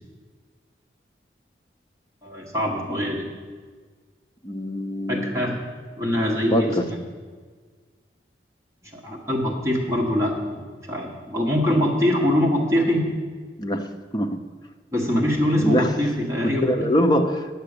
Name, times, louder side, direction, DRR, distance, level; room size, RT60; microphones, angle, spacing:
voice 1, 2.2-3.3 5.1-5.6 5.9-7.0 8.9-13.0 14.9-16.9, equal, 15° right, -3 dB, 1.4 m, -23 dB
voice 2, 4.4-5.4 6.5-6.8 13.6-13.9 14.1-14.4 15.6-15.9 16.6-17.5, equal, 25° left, 4 dB, 0.6 m, -23 dB
9.9 x 6.7 x 6.7 m, 1.5 s
head